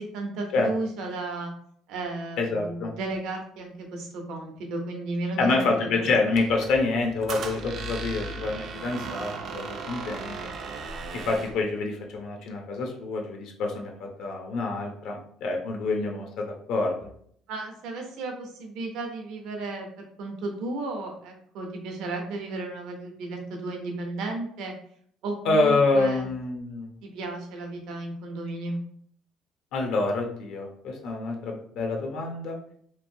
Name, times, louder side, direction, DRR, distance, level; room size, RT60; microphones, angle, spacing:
voice 1, 0.0-1.5 1.9-5.7 6.0-6.1 17.5-24.7 25.2-26.3 27.0-28.8, right 2 dB, 75° right, 2 dB, 0.8 m, -34 dB
voice 2, 2.4-2.9 5.4-10.3 11.1-17.0 25.4-27.0 29.7-32.7, left 3 dB, 70° left, 2 dB, 0.6 m, -27 dB
Squeak, 6.3-11.6, right 3 dB, 45° right, 0.4 m, -37 dB
3.0 x 2.5 x 2.7 m, 0.63 s
cardioid pair, 140°, 0 cm